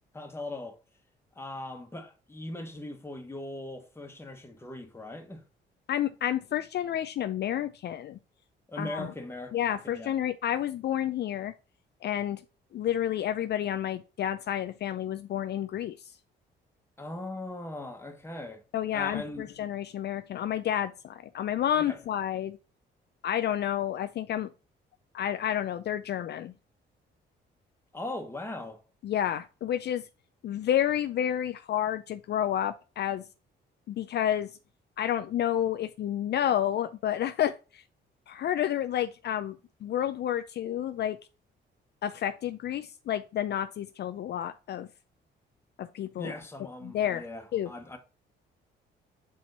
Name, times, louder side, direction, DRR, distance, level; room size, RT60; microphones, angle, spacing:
voice 1, 0.1-0.8 1.3-5.4 8.7-9.5 9.8-10.1 17.0-18.6 18.9-19.5 21.7-22.0 27.9-28.8 46.2-48.0, left 1 dB, 10° left, 1.5 m, -39 dB
voice 2, 5.9-8.2 8.8-9.1 9.5-11.5 12.0-12.4 12.7-16.1 18.7-22.6 23.2-24.5 25.1-26.5 29.0-30.0 30.4-33.2 33.9-34.5 35.0-37.8 38.3-39.6 39.8-41.2 42.0-44.9 45.8-46.3 46.8-47.3 47.5-47.7, left 10 dB, 60° left, 0.4 m, -30 dB
6.2 x 4.3 x 4.0 m
cardioid pair, 90°, 20 cm